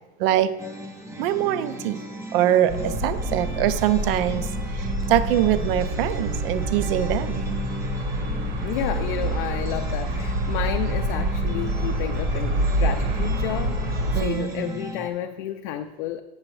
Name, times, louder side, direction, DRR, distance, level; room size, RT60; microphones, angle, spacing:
voice 1, 0.2-0.5 1.2-2.0 2.3-4.5 4.7-7.6 14.1-14.8, right 12 dB, 65° right, 13 dB, 0.5 m, -23 dB
sound 1, 0.6-15.1, equal, 10° right, 0.4 m, -38 dB
sound 2, 2.7-14.3, right 1 dB, 30° right, 0.8 m, -27 dB
voice 2, 8.6-16.2, left 11 dB, 55° left, 6 dB, 0.4 m, -31 dB
8.7 x 7.6 x 3.1 m, 1.1 s
supercardioid pair, 165°, 30 cm